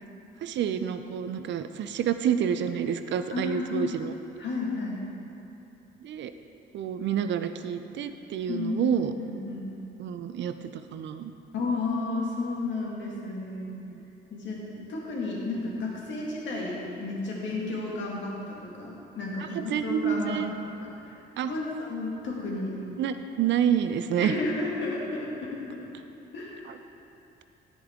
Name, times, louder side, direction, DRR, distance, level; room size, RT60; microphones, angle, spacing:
voice 1, 0.4-4.1 6.0-6.3 6.7-9.1 10.0-11.3 13.9-14.0 19.5-20.5 21.4-21.5 23.0-24.4, right 9 dB, 65° right, 10 dB, 0.5 m, -28 dB
voice 2, 3.3-3.9 4.4-5.1 8.5-9.7 11.5-13.8 14.3-21.2 21.4-22.8 24.2-25.6 26.3-26.6, left 3 dB, 70° left, -3 dB, 2.0 m, -32 dB
13.0 x 5.3 x 3.7 m, 2.9 s
cardioid pair, 90°, 20 cm